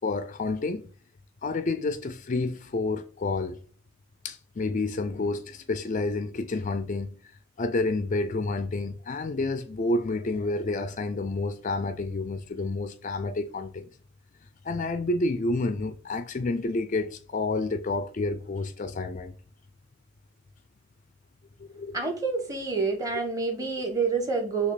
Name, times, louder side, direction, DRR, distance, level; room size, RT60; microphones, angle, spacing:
voice 1, 0.0-0.9 1.4-3.6 4.2-7.1 7.6-13.9 14.6-19.3 21.6-22.1, left 2 dB, 35° left, 0.4 m, -29 dB
voice 2, 21.9-24.7, right 4 dB, 15° right, 1.2 m, -28 dB
6.5 x 2.9 x 5.7 m
head